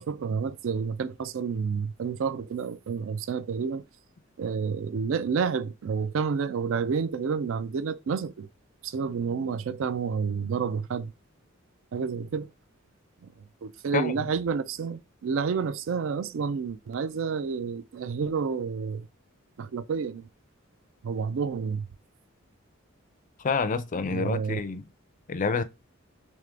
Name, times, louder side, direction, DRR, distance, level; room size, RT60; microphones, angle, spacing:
voice 1, 0.0-3.8 4.4-8.5 8.8-11.1 11.9-12.5 13.2-13.3 13.6-19.1 19.6-20.3 21.0-21.9 24.1-24.6, right 5 dB, 65° right, 0.4 m, -29 dB
voice 2, 13.9-14.2 23.4-24.9 25.3-25.6, left 4 dB, 40° left, 0.4 m, -28 dB
3.5 x 3.3 x 3.7 m
head